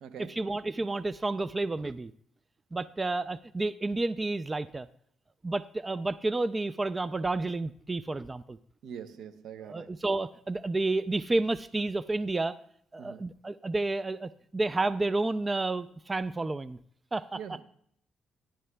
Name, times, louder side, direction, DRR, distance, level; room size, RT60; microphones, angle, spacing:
voice 1, 0.2-2.1 2.7-4.9 5.4-8.6 9.6-12.5 12.9-16.8 17.1-17.4, right 2 dB, 25° right, 15 dB, 0.3 m, -30 dB
voice 2, 8.8-9.9 13.0-13.2 17.3-17.6, right 8 dB, 75° right, 11 dB, 0.7 m, -43 dB
14.5 x 10.5 x 2.2 m, 0.66 s
cardioid pair, 90°, 0 cm